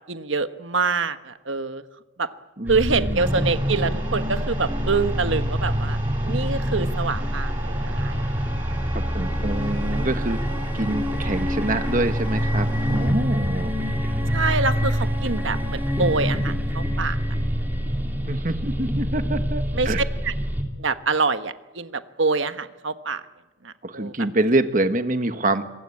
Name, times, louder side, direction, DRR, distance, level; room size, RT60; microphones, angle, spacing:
voice 1, 0.1-1.8 2.2-2.3 2.7-6.0 6.2-8.3 14.3-17.2 19.7-19.9 20.2-20.3 20.8-23.2 23.6-24.1, right 4 dB, 75° right, 10 dB, 1.4 m, -25 dB
voice 2, 2.6-3.4 9.1-10.4 10.7-14.3 18.3-20.0 23.8-25.6, right 2 dB, 40° right, 8 dB, 1.5 m, -26 dB
sound 1, 2.7-20.6, equal, 10° right, 2.9 m, -25 dB
sound 2, 3.2-13.1, right 2 dB, 25° right, 4.3 m, -39 dB
26.0 x 22.5 x 8.7 m, 1.1 s
head